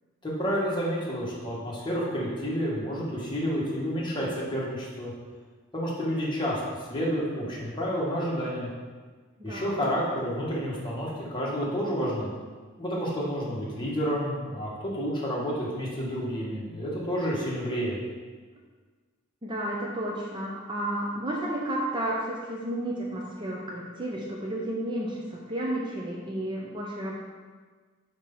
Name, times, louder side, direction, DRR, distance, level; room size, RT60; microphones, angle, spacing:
voice 1, 0.2-5.1 5.7-6.6 6.9-8.7 9.4-12.3 12.8-18.0, equal, 25° left, -5 dB, 1.5 m, -30 dB
voice 2, 9.4-9.8 19.4-27.1, right 1 dB, 25° right, -3 dB, 0.6 m, -32 dB
4.7 x 4.4 x 5.4 m, 1.5 s
head